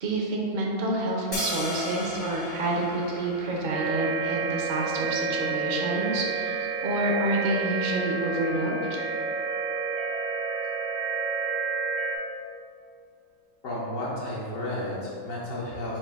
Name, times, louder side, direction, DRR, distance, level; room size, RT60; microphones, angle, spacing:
voice 1, 0.0-9.0, right 1 dB, 55° right, -1 dB, 0.6 m, -28 dB
sound 1, 1.3-7.4, left 1 dB, 40° left, 0.6 m, -38 dB
sound 2, 3.7-12.2, right 4 dB, 85° right, 1.0 m, -30 dB
voice 2, 13.6-16.0, left 1 dB, 75° left, -7 dB, 1.2 m, -32 dB
4.5 x 2.6 x 4.5 m, 2.3 s
omnidirectional pair, 1.4 m